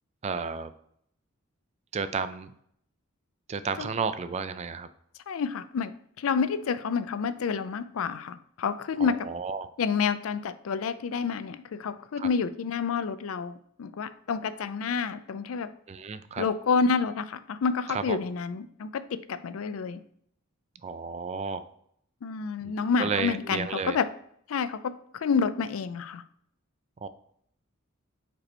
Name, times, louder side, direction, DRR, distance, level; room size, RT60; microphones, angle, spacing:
voice 1, 0.2-0.7 1.9-2.5 3.5-4.9 9.0-9.7 12.2-12.3 15.9-16.4 17.9-18.2 20.8-21.7 22.6-22.7 23.0-24.0 27.0-27.1, right 5 dB, 30° right, 12 dB, 0.3 m, -32 dB
voice 2, 5.3-5.9 6.2-9.3 9.8-15.7 16.4-20.0 22.2-24.1 24.5-26.2, left 5 dB, 70° left, 13 dB, 0.4 m, -29 dB
5.3 x 4.3 x 4.2 m, 0.67 s
head